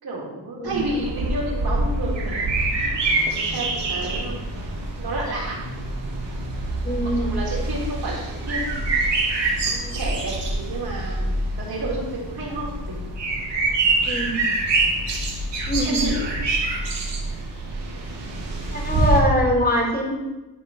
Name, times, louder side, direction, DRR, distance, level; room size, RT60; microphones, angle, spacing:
voice 1, 0.0-4.5 5.0-5.6 7.2-8.9 9.7-13.0 15.8-16.2, right 1 dB, 60° right, -4 dB, 3.9 m, -31 dB
sound 1, 0.7-19.2, right 2 dB, 80° right, 2.8 m, -25 dB
voice 2, 6.8-7.3 14.0-14.4 15.7-16.0 18.7-20.1, equal, 20° left, 0 dB, 2.6 m, -23 dB
12.5 x 4.3 x 6.8 m, 1.1 s
wide cardioid pair, 120°, 42 cm